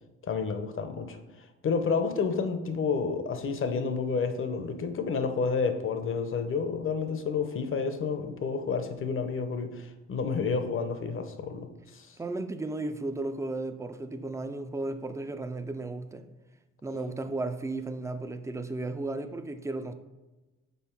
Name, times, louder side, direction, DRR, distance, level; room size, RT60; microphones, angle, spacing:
voice 1, 0.2-12.2, left 5 dB, 45° left, 0.7 m, -30 dB
voice 2, 12.2-16.3 16.8-19.9, right 2 dB, 10° right, 0.4 m, -34 dB
5.6 x 4.0 x 4.5 m
cardioid pair, 90°, 30 cm